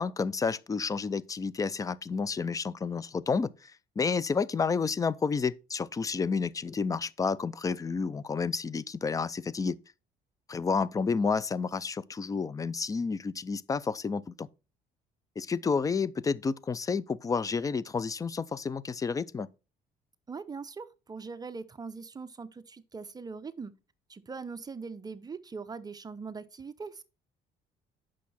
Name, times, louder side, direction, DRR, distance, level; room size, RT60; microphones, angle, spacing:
voice 1, 0.0-9.8 10.5-14.5 15.4-19.5, left 5 dB, 20° left, 0.4 m, -30 dB
voice 2, 20.3-23.7 24.1-27.0, right 4 dB, 25° right, 0.6 m, -41 dB
8.3 x 6.2 x 4.2 m
cardioid pair, 110°, 17 cm